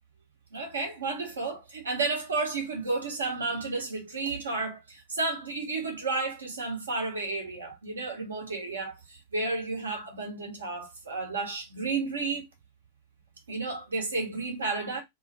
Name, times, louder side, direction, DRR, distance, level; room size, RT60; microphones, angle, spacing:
voice 1, 0.5-12.5 13.5-15.0, right 3 dB, 70° right, 0.9 m, -32 dB
2.3 x 2.1 x 2.8 m
figure-of-eight pair, 90°, 0 cm